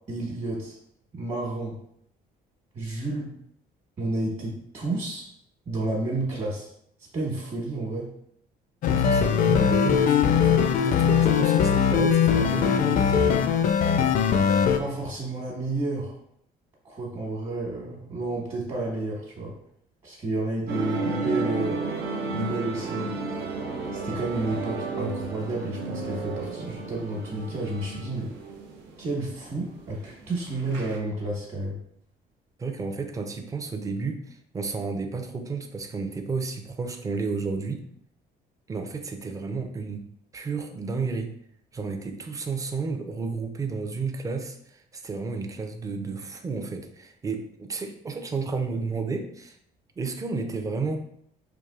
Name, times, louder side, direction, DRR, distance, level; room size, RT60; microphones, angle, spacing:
voice 1, 0.1-0.8 1.1-1.8 2.7-3.3 4.0-5.3 5.7-6.7 7.0-8.1 14.8-16.2 16.8-19.6 20.0-21.8 22.3-23.2 23.9-28.3 29.0-31.8, right 2 dB, 40° right, -4 dB, 1.2 m, -31 dB
sound 1, 8.8-14.8, left 7 dB, 55° left, 0.4 m, -21 dB
voice 2, 8.9-13.4 32.6-37.8 38.7-40.1 40.3-41.3 41.7-49.6 50.0-51.0, right 4 dB, 20° right, 5 dB, 0.4 m, -32 dB
sound 2, 20.7-31.0, right 3 dB, 85° right, 0.7 m, -33 dB
4.7 x 2.6 x 2.4 m, 0.69 s
cardioid pair, 110°, 17 cm